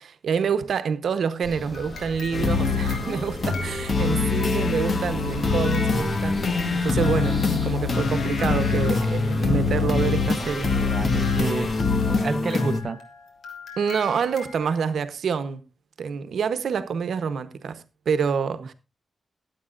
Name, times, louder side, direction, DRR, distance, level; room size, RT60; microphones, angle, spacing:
voice 1, 0.0-6.5 6.7-10.7 13.8-15.6 16.0-18.7, right 6 dB, 85° right, 0.9 m, -27 dB
sound 1, 1.4-12.2, right 1 dB, 25° left, 6.0 m, -38 dB
sound 2, 1.7-4.4 5.2-15.0, left 4 dB, 85° left, 3.3 m, -41 dB
sound 3, 2.3-12.8, left 4 dB, 50° left, 1.6 m, -24 dB
voice 2, 4.6-5.1 9.4-9.6 10.4-11.7 12.1-13.0, right 4 dB, 45° right, 0.7 m, -31 dB
22.5 x 8.3 x 2.5 m
wide cardioid pair, 125°, 0 cm